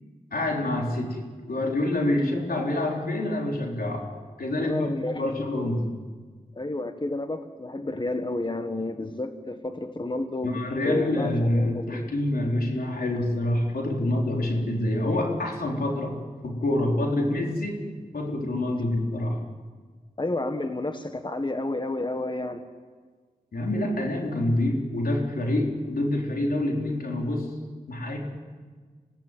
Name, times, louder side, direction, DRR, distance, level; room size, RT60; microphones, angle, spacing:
voice 1, 0.3-1.2 1.5-4.1 4.4-5.9 10.4-17.8 18.1-19.4 23.5-27.5 27.9-28.2, left 1 dB, 80° left, 0 dB, 4.1 m, -26 dB
voice 2, 4.6-5.4 6.5-12.1 20.2-22.6, left 2 dB, 30° left, 7 dB, 1.6 m, -31 dB
26.5 x 17.5 x 9.2 m, 1.5 s
cardioid pair, 50°, 15 cm